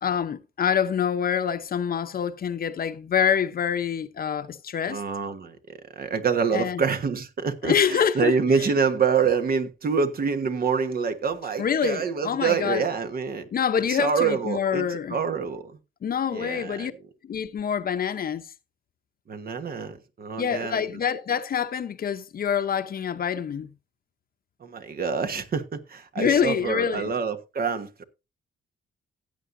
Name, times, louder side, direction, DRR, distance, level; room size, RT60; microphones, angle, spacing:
voice 1, 0.0-5.0 6.5-6.8 7.6-8.3 11.6-12.9 13.5-15.2 16.0-16.9 17.2-18.4 20.4-23.7 26.2-27.1, left 8 dB, 50° left, 0.9 m, -26 dB
voice 2, 4.9-5.6 5.9-13.5 13.9-15.8 16.3-16.9 19.3-20.8 24.6-28.0, right 5 dB, 50° right, 1.4 m, -26 dB
15.5 x 8.3 x 2.7 m
cardioid pair, 90°, 20 cm